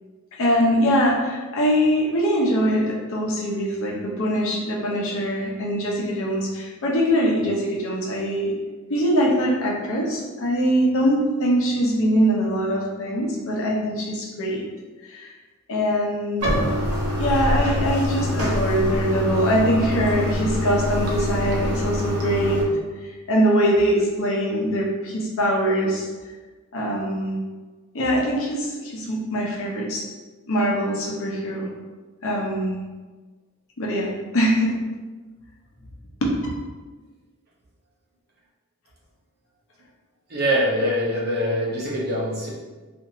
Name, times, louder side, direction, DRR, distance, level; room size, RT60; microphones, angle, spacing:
voice 1, 0.3-8.5 8.9-14.6 15.1-15.3 15.7-16.5 17.2-22.7 23.0-26.1 26.7-27.4 27.9-30.0 30.5-31.7 32.2-32.8 33.8-34.8 36.2-36.3, equal, 65° left, -2 dB, 0.7 m, -22 dB
Bathtub (filling or washing), 16.4-22.6, left 1 dB, 80° right, 0.7 m, -24 dB
voice 2, 40.3-42.5, equal, 50° right, -4 dB, 0.7 m, -23 dB
2.9 x 2.5 x 2.6 m, 1.3 s
head